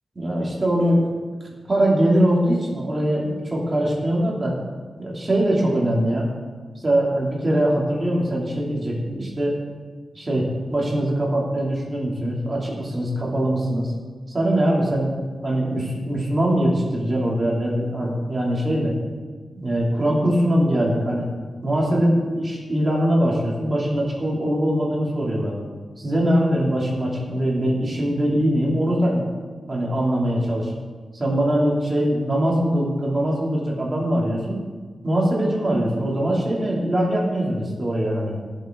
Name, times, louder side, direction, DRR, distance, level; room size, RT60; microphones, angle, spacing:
voice 1, 0.1-1.1 1.7-4.5 5.0-6.3 6.8-9.5 10.1-13.9 14.3-15.1 15.4-18.9 19.6-21.3 21.6-25.5 26.0-29.2 29.7-30.7 31.1-34.6 35.0-38.4, right 1 dB, 30° right, -3 dB, 3.2 m, -22 dB
16.5 x 7.7 x 4.0 m, 1.5 s
wide cardioid pair, 110°, 0 cm